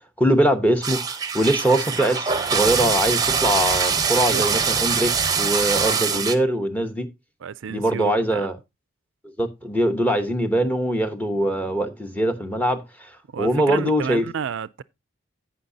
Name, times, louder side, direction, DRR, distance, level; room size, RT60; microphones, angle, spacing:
voice 1, 0.2-1.0 1.3-7.1 7.7-8.6 9.4-13.1 13.4-14.2, right 1 dB, 10° left, 0.9 m, -22 dB
sound 1, 0.8-6.4, right 6 dB, 20° right, 0.8 m, -23 dB
voice 2, 5.9-6.2 7.4-8.5 13.3-14.8, right 6 dB, 65° right, 0.4 m, -31 dB
16.5 x 5.7 x 2.7 m
head